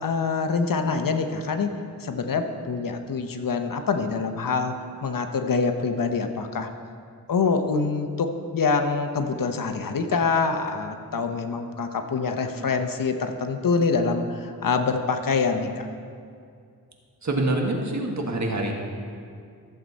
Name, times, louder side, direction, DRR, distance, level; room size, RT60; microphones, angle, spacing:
voice 1, 0.0-4.7 5.0-6.7 7.3-15.9, left 4 dB, 65° left, 6 dB, 0.9 m, -25 dB
voice 2, 17.2-18.7, right 2 dB, 50° right, 1 dB, 1.6 m, -25 dB
14.5 x 7.7 x 4.1 m, 2.3 s
wide cardioid pair, 80°, 36 cm